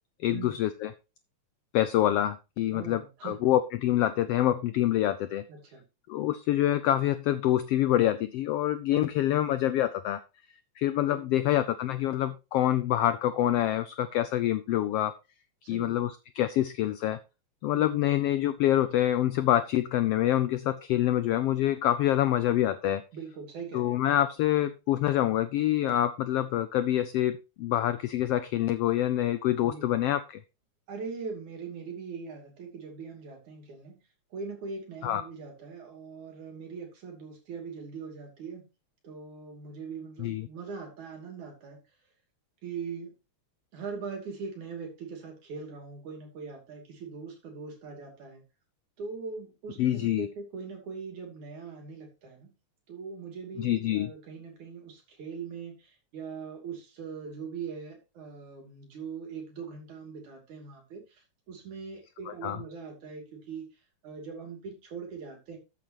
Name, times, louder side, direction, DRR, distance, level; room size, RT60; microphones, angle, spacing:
voice 1, 0.2-0.7 1.7-5.4 6.1-10.2 10.8-15.1 15.7-17.2 17.6-23.0 23.7-30.4 35.0-35.2 40.2-40.5 49.8-50.3 53.6-54.1 62.3-62.6, left 12 dB, 85° left, 12 dB, 1.3 m, -26 dB
voice 2, 2.7-3.5 5.5-5.8 8.9-9.3 11.1-11.4 15.6-16.0 17.7-18.1 23.1-24.0 29.6-29.9 30.9-34.0 34.3-38.7 39.0-41.8 42.6-43.1 43.7-48.4 49.0-52.5 52.9-63.7 64.0-65.6, right 5 dB, 75° right, 3 dB, 4.2 m, -41 dB
13.5 x 7.7 x 3.0 m, 0.28 s
omnidirectional pair, 3.4 m